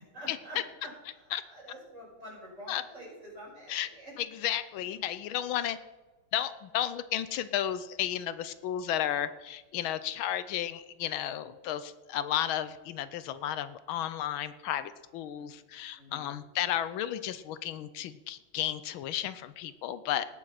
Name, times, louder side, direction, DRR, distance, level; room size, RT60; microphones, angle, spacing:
voice 1, 0.1-4.1 15.3-15.6 16.0-16.3, equal, 35° right, -4 dB, 6.0 m, -47 dB
voice 2, 4.2-5.8 6.3-20.3, left 11 dB, 80° left, 13 dB, 1.5 m, -33 dB
18.5 x 7.4 x 5.8 m, 1.2 s
omnidirectional pair, 2.2 m